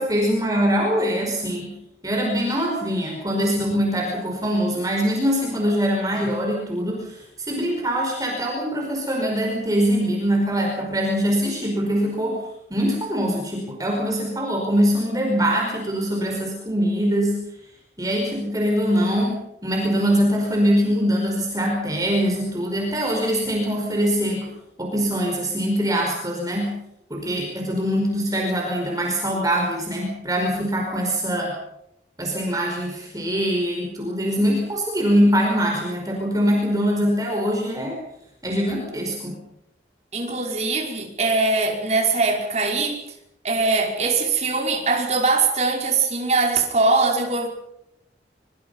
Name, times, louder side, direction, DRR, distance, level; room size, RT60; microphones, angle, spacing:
voice 1, 0.0-1.7 2.0-12.4 12.7-17.4 18.0-24.5 24.8-26.8 27.1-31.5 32.2-38.0 38.4-39.4, equal, 20° right, 0 dB, 5.2 m, -23 dB
voice 2, 40.1-43.0 43.4-47.5, right 3 dB, 40° right, 1 dB, 5.3 m, -21 dB
24.5 x 24.5 x 5.7 m, 0.79 s
head